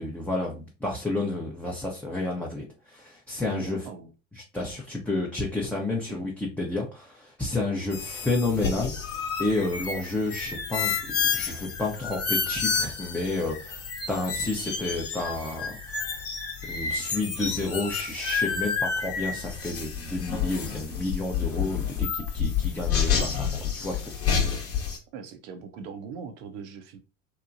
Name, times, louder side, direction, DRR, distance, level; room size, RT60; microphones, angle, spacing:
voice 1, 0.0-3.8 4.5-13.8 14.1-15.8 16.7-24.1, left 2 dB, 5° left, 0.6 m, -30 dB
voice 2, 3.5-4.1 6.1-6.2 25.1-27.0, right 6 dB, 60° right, 0.7 m, -40 dB
sound 1, 7.9-25.0, left 6 dB, 40° left, 0.9 m, -30 dB
2.9 x 2.1 x 2.5 m
hypercardioid pair, 70°, 38 cm